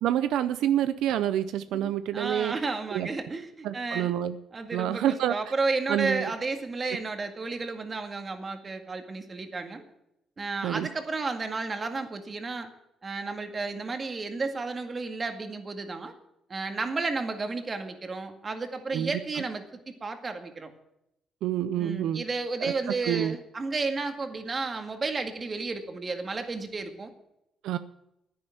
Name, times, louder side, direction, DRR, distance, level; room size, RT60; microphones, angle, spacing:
voice 1, 0.0-2.5 2.9-3.1 3.6-4.4 4.7-5.4 5.9-6.3 10.6-10.9 18.9-19.1 21.4-22.2 22.6-22.7 23.0-23.4 27.6-27.8, right 11 dB, 85° right, 13 dB, 0.5 m, -27 dB
voice 2, 1.7-4.1 4.5-9.8 10.4-12.7 13.0-16.1 16.5-20.7 21.8-27.1, right 3 dB, 35° right, 6 dB, 2.0 m, -32 dB
10.5 x 9.8 x 9.3 m, 0.83 s
cardioid pair, 90°, 0 cm